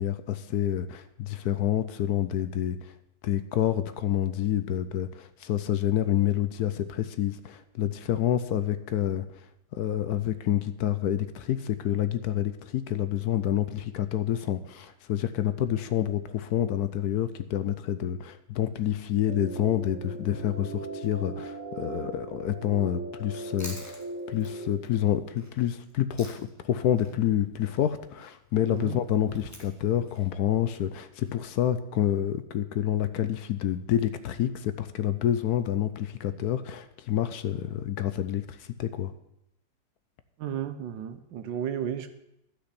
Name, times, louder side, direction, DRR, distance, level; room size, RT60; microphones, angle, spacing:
voice 1, 0.0-2.9 3.2-9.3 9.7-24.0 24.3-39.1, left 11 dB, 70° left, 12 dB, 1.1 m, -28 dB
sound 1, 19.3-24.7, right 3 dB, 55° right, 1.2 m, -39 dB
Chewing mastication, 23.2-26.7 27.0-31.3, left 1 dB, 10° left, 1.5 m, -49 dB
voice 2, 40.4-42.1, right 9 dB, 90° right, 9 dB, 1.5 m, -33 dB
12.0 x 5.9 x 8.2 m, 0.81 s
omnidirectional pair, 1.9 m